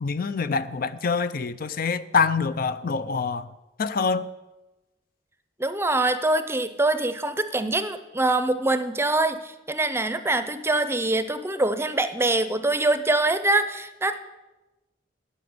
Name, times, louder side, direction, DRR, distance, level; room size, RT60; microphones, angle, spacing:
voice 1, 0.0-3.5 3.8-4.3, left 5 dB, 50° left, 0.5 m, -25 dB
voice 2, 5.6-14.2, right 2 dB, 15° right, 0.6 m, -24 dB
11.0 x 6.8 x 9.5 m
head